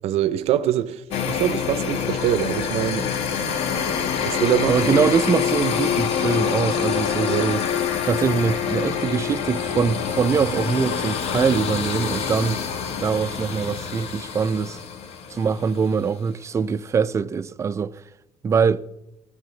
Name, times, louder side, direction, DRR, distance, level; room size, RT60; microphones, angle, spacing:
voice 1, 0.0-3.1 4.2-4.9 7.3-7.5, right 12 dB, 75° right, 0.6 m, -24 dB
sound 1, 1.1-15.9, left 7 dB, 70° left, 1.4 m, -26 dB
voice 2, 4.7-7.6 8.0-12.6 13.0-14.8 15.3-18.0 18.4-18.8, right 6 dB, 25° right, 0.5 m, -23 dB
19.5 x 16.5 x 3.2 m
cardioid pair, 140°, 11 cm